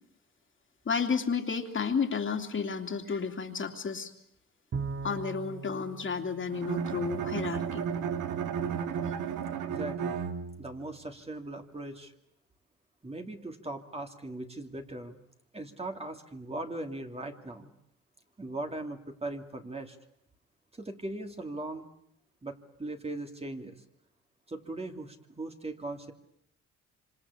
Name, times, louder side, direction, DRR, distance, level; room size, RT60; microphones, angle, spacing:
voice 1, 0.9-4.1 5.0-7.8, left 5 dB, 40° left, 4 dB, 2.9 m, -32 dB
Bowed string instrument, 4.7-7.3, right 4 dB, 40° right, 1.5 m, -40 dB
Bowed string instrument 2, 6.5-10.8, right 7 dB, 80° right, 1.9 m, -33 dB
voice 2, 9.6-10.2 10.6-12.1 13.0-15.2 15.5-17.7 18.4-20.0 20.7-21.9 22.4-23.8 24.5-26.1, right 2 dB, 20° right, 4 dB, 2.8 m, -39 dB
26.5 x 26.0 x 8.6 m, 0.73 s
cardioid pair, 90°, 30 cm